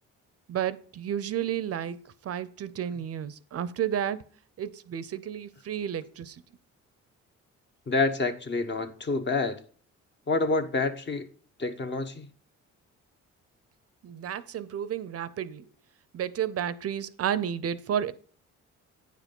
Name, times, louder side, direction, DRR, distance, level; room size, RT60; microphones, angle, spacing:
voice 1, 0.5-4.3 4.6-6.4 14.0-15.7 16.1-18.1, right 9 dB, 50° right, 0.6 m, -32 dB
voice 2, 7.9-9.6 10.3-11.3 11.6-12.3, left 3 dB, 40° left, 1.1 m, -27 dB
9.1 x 5.0 x 5.3 m
cardioid pair, 90°, 30 cm